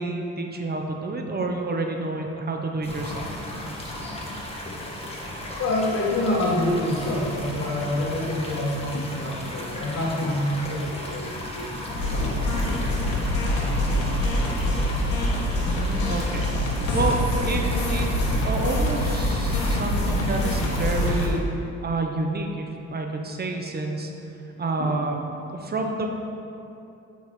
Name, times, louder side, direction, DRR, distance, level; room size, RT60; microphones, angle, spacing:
voice 1, 0.0-3.2 15.7-16.5 16.9-18.1 18.4-21.4 21.8-24.1 24.6-25.2 25.5-26.1, right 2 dB, 30° right, 3 dB, 0.7 m, -29 dB
sound 1, 2.8-21.3, left 1 dB, 20° left, 1.3 m, -34 dB
voice 2, 5.6-11.9 12.2-12.3, left 1 dB, 55° left, -3 dB, 1.5 m, -27 dB
sound 2, 11.9-21.3, left 1 dB, 80° left, 1.3 m, -25 dB
8.6 x 5.4 x 3.1 m, 2.8 s
cardioid pair, 90°, 30 cm